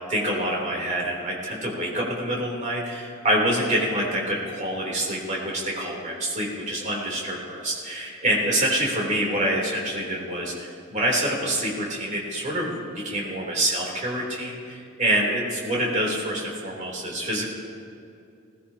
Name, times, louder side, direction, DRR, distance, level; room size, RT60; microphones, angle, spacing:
voice 1, 0.1-17.4, right 1 dB, 35° right, -3 dB, 3.4 m, -26 dB
21.0 x 17.5 x 2.9 m, 2.5 s
head